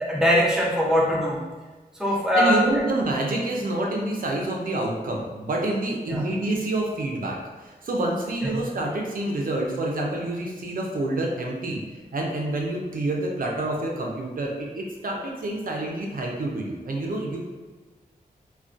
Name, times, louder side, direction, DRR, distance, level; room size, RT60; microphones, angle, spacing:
voice 1, 0.0-1.4 2.0-2.6 6.1-6.2, equal, 5° right, -4 dB, 0.6 m, -21 dB
voice 2, 2.1-11.8 12.1-17.4, right 2 dB, 60° right, -1 dB, 0.5 m, -28 dB
2.3 x 2.2 x 2.4 m, 1.3 s
cardioid pair, 60°, 16 cm